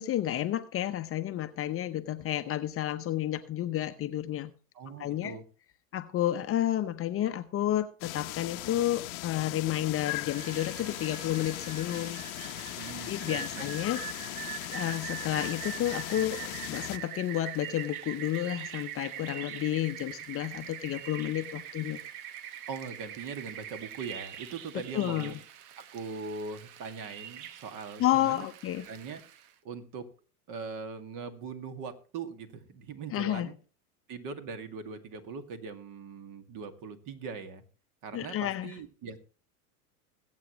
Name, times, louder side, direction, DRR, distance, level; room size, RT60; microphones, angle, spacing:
voice 1, 0.0-4.5 5.0-5.4 5.9-12.2 13.1-14.0 14.7-22.0 24.9-25.3 28.0-28.8 33.1-33.5 38.1-38.7, left 13 dB, 30° left, 0.8 m, -31 dB
voice 2, 4.7-5.4 12.7-13.7 22.7-25.3 25.9-28.5 28.9-29.2 29.6-30.0 30.5-33.6 34.1-37.6 38.0-39.2, right 5 dB, 45° right, 2.1 m, -41 dB
sound 1, 8.0-17.0, left 20 dB, 60° left, 0.9 m, -39 dB
Rain, 10.0-29.5, right 10 dB, 65° right, 1.3 m, -43 dB
21.5 x 8.4 x 3.1 m
hypercardioid pair, 110°, 46 cm